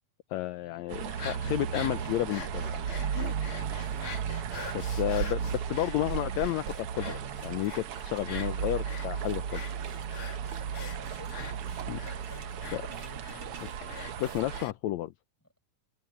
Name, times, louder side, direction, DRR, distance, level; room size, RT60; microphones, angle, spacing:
voice 1, 0.3-2.9 4.7-9.6 11.9-12.0 12.7-12.8 13.6-13.7 14.2-15.1, left 15 dB, 75° left, 1.9 m, -32 dB
sound 1, 0.9-14.6, right 8 dB, 60° right, 1.7 m, -35 dB
sound 2, 1.0-14.7, left 6 dB, 45° left, 2.6 m, -45 dB
voice 2, 3.9-4.2 10.8-13.6, left 1 dB, 5° left, 6.6 m, -52 dB
sound 3, 6.0-6.1 6.3-6.4 6.6-14.8, right 5 dB, 40° right, 2.7 m, -54 dB
omnidirectional pair, 3.5 m